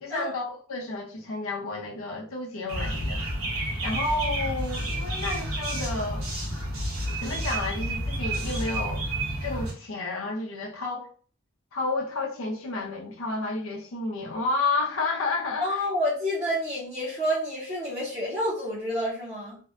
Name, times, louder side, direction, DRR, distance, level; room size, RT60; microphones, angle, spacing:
voice 1, 0.0-6.2 7.2-9.1 9.4-11.1 11.7-15.8, left 3 dB, 70° left, 0.6 m, -31 dB
sound 1, 2.7-9.7, right 1 dB, 80° right, 0.9 m, -30 dB
voice 2, 15.6-19.6, equal, 30° right, 0.7 m, -29 dB
2.6 x 2.2 x 2.4 m
head